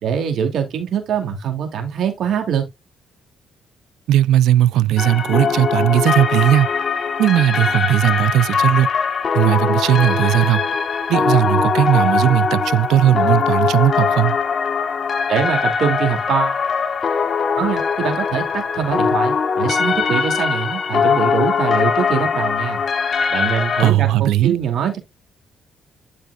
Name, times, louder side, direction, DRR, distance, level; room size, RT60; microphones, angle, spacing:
voice 1, 0.0-2.6 15.3-16.6 17.6-22.8 23.3-25.0, right 8 dB, 70° right, 2.6 m, -23 dB
voice 2, 4.1-6.7 7.2-8.9 9.3-10.7 11.1-14.4 23.8-24.5, right 13 dB, 85° right, 0.3 m, -17 dB
sound 1, 5.0-23.9, left 6 dB, 50° left, 1.5 m, -21 dB
12.0 x 5.0 x 2.4 m
cardioid pair, 90°, 0 cm